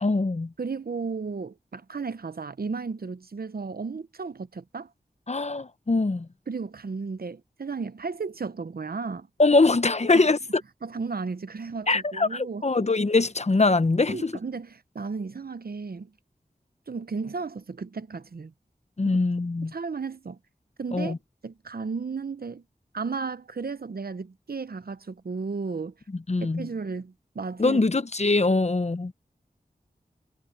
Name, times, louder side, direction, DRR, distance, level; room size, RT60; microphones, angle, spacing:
voice 1, 0.0-0.5 5.3-6.3 9.4-10.4 11.9-14.3 19.0-19.7 20.9-21.2 26.3-26.7 27.6-29.1, left 3 dB, 45° left, 0.9 m, -23 dB
voice 2, 0.6-4.9 6.5-9.3 10.1-10.3 10.8-12.7 14.1-16.1 16.9-18.5 19.0-19.2 19.6-20.4 20.8-21.1 21.4-22.6 22.9-25.9 26.4-27.8, right 4 dB, 70° right, 0.9 m, -34 dB
wide cardioid pair, 45°, 16 cm